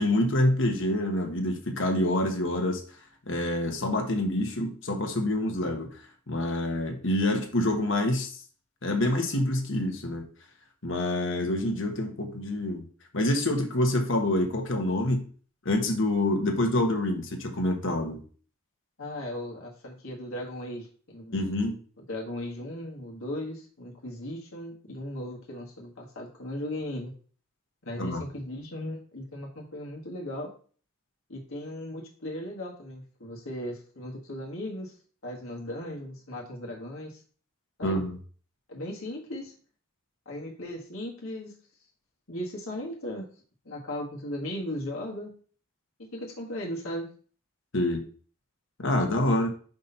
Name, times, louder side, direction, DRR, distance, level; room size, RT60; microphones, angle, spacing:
voice 1, 0.0-2.8 3.3-5.9 6.3-8.4 8.8-10.3 10.8-12.8 13.1-15.3 15.6-18.2 21.3-21.8 28.0-28.2 37.8-38.2 47.7-48.0 48.8-49.5, left 1 dB, 65° left, 3 dB, 1.3 m, -26 dB
voice 2, 19.0-21.3 22.0-27.1 27.8-30.5 31.3-34.9 35.2-37.2 37.8-38.0 38.7-39.5 40.2-41.5 42.3-43.3 43.6-45.3 46.0-47.1, left 1 dB, 85° left, -2 dB, 1.6 m, -37 dB
5.2 x 4.2 x 5.5 m, 0.43 s
head